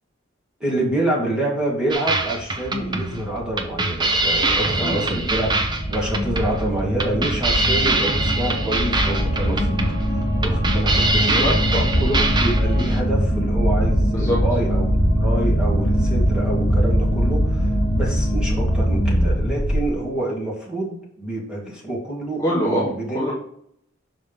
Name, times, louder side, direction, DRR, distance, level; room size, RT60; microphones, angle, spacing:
voice 1, 0.6-5.6 5.9-9.7 10.1-11.5 12.0-23.2, right 1 dB, 5° right, -4 dB, 2.4 m, -27 dB
sound 1, 1.9-13.0, right 2 dB, 25° right, 0.8 m, -24 dB
sound 2, 2.6-19.9, equal, 40° left, 2.0 m, -22 dB
voice 2, 4.8-5.1 11.4-11.9 14.1-14.4 22.4-23.3, equal, 20° left, -6 dB, 1.3 m, -24 dB
Bowed string instrument, 7.9-13.0, right 1 dB, 60° right, 2.3 m, -37 dB
5.8 x 5.1 x 5.4 m, 0.70 s
head